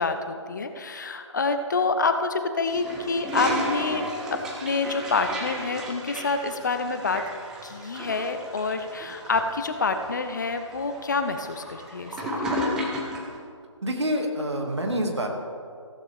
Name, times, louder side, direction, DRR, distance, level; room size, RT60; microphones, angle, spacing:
voice 1, 0.0-4.1 4.3-7.2 7.6-12.2 12.4-12.6, left 4 dB, 35° left, 8 dB, 0.7 m, -27 dB
Toilet flush, 2.7-13.3, equal, 5° right, 0.6 m, -33 dB
voice 2, 13.8-15.3, equal, 60° right, 2 dB, 2.3 m, -27 dB
15.0 x 14.0 x 3.6 m, 2.3 s
figure-of-eight pair, 150°, 16 cm